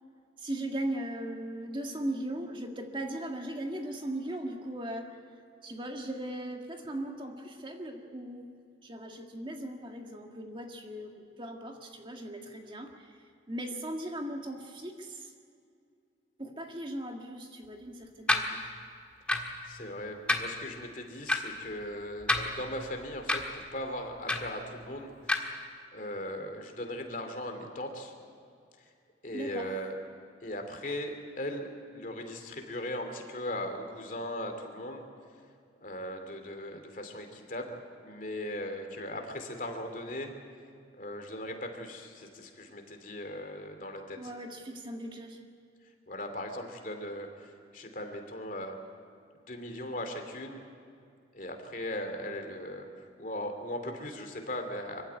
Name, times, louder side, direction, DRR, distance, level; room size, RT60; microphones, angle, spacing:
voice 1, 0.4-5.1 5.6-8.5 8.8-11.1 11.4-13.1 13.5-15.3 16.4-18.7 29.3-29.7 44.2-45.4, right 1 dB, 25° right, 3 dB, 1.7 m, -38 dB
sound 1, 18.3-18.5 19.3-19.5 20.3-20.5 21.3-21.4 22.2-22.8 23.3-23.5 24.3-24.5 25.3-25.4, left 2 dB, 5° left, 1.5 m, -28 dB
voice 2, 19.6-25.6 25.9-28.1 28.8-28.9 29.2-30.0 30.4-35.0 35.8-40.4 40.9-44.3 46.1-48.8 49.5-50.6 51.3-55.0, left 1 dB, 45° left, 5 dB, 2.7 m, -38 dB
25.0 x 15.5 x 9.6 m, 2.4 s
head